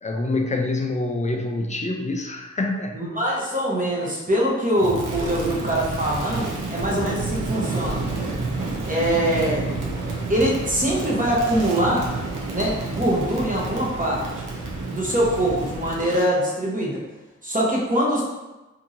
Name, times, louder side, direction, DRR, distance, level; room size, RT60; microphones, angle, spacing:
voice 1, 0.0-3.0, left 2 dB, 25° left, 3 dB, 0.4 m, -26 dB
voice 2, 2.9-8.0 8.9-9.6 10.3-12.0 12.5-14.2 14.9-17.0 17.4-18.2, right 1 dB, 25° right, -4 dB, 0.8 m, -23 dB
Crackle, 4.8-16.3, right 3 dB, 80° right, 0.7 m, -30 dB
2.7 x 2.7 x 2.5 m, 1.1 s
wide cardioid pair, 55°, 31 cm